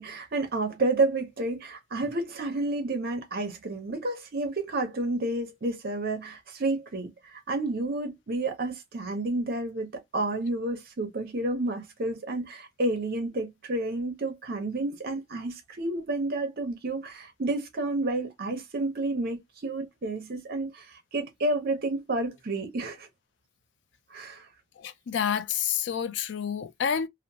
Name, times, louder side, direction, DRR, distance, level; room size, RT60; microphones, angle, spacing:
voice 1, 0.0-23.1 24.1-24.5, right 2 dB, 50° right, 0.6 m, -30 dB
voice 2, 24.8-27.1, left 8 dB, 65° left, 0.4 m, -29 dB
2.8 x 2.0 x 2.6 m
head